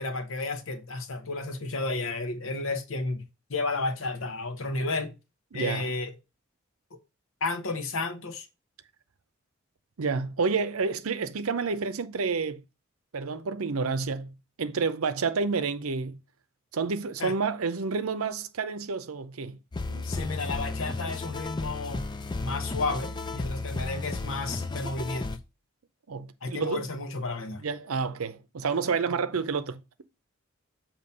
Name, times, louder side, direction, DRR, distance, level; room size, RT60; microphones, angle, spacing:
voice 1, 0.0-3.2 3.5-5.1 5.5-6.1 7.4-8.5 17.2-17.3 20.0-22.1 22.4-25.4 26.4-27.6, left 3 dB, 70° left, 1.0 m, -32 dB
voice 2, 5.5-5.9 10.0-12.6 13.1-16.2 16.7-19.6 19.9-20.0 26.1-26.8 27.6-30.0, right 5 dB, 90° right, 0.7 m, -29 dB
sound 1, 19.7-25.4, left 3 dB, 20° left, 0.4 m, -34 dB
7.0 x 2.9 x 5.4 m
head